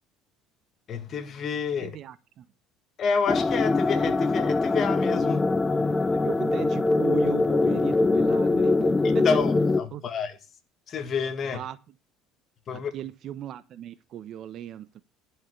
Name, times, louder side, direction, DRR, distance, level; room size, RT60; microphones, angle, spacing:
voice 1, 0.9-2.0 3.0-5.4 9.0-10.4 10.9-11.6 12.7-12.9, left 6 dB, 45° left, 2.0 m, -29 dB
voice 2, 1.8-2.4 6.2-9.3 9.9-10.0 11.5-11.8 12.9-15.0, right 11 dB, 55° right, 1.0 m, -37 dB
sound 1, 3.3-9.8, left 3 dB, 20° left, 0.7 m, -23 dB
11.5 x 5.8 x 8.1 m
supercardioid pair, 95°, 0 cm